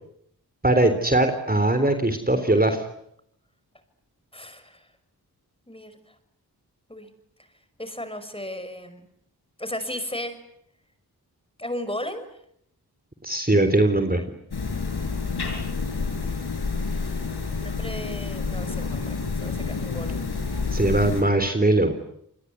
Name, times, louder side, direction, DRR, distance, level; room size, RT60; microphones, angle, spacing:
voice 1, 0.6-2.8 13.2-14.2 20.7-21.9, right 2 dB, 25° right, 8 dB, 3.6 m, -20 dB
voice 2, 4.3-4.9 5.7-6.2 6.9-7.1 7.8-9.0 9.6-10.4 11.6-12.2 17.5-20.3, left 1 dB, 15° left, 10 dB, 5.9 m, -35 dB
sound 1, 14.5-21.2, left 4 dB, 80° left, 6.3 m, -29 dB
29.0 x 21.5 x 9.6 m, 0.74 s
cardioid pair, 45°, 38 cm